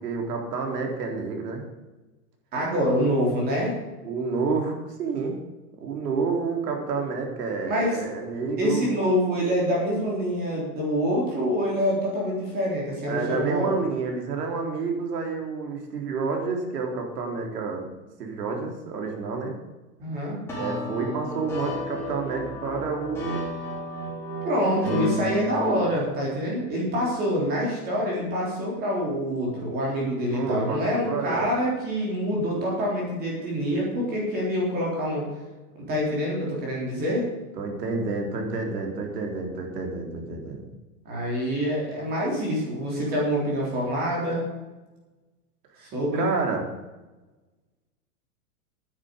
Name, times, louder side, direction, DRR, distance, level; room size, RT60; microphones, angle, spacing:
voice 1, 0.0-1.6 4.0-5.4 5.8-8.9 13.1-17.9 18.2-19.5 20.6-23.4 25.0-25.2 30.3-31.5 37.6-40.7 45.8-46.6, right 4 dB, 85° right, 2 dB, 4.2 m, -29 dB
voice 2, 2.5-3.7 7.7-8.0 8.6-13.7 20.0-20.4 24.4-35.3 35.9-37.3 41.0-44.4 45.8-46.3, equal, 20° right, -3 dB, 3.6 m, -26 dB
sound 1, 20.5-25.8, equal, 5° left, 3.8 m, -32 dB
10.0 x 9.4 x 8.2 m, 1.1 s
supercardioid pair, 175°, 46 cm